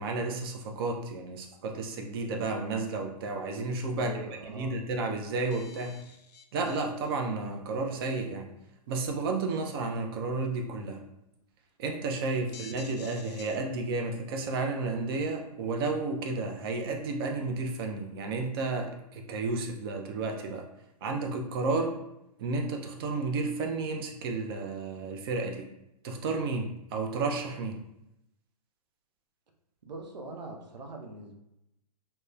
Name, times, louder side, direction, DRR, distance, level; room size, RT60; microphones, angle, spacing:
voice 1, 0.0-4.1 4.5-6.0 6.5-8.5 8.9-11.0 11.8-20.6 21.0-21.9 22.4-25.7 26.0-27.8, right 3 dB, 35° right, 3 dB, 0.4 m, -32 dB
voice 2, 3.9-4.7 12.4-12.6 29.9-31.4, right 2 dB, 85° right, 2 dB, 0.6 m, -42 dB
sound 1, 4.8-4.9 5.1-5.2 5.5-7.1 7.9-8.0 9.0-9.3 11.4-11.5 11.9-12.0 12.4-13.6, left 6 dB, 75° left, 0.4 m, -50 dB
2.8 x 2.1 x 2.3 m, 0.85 s
hypercardioid pair, 135°, 21 cm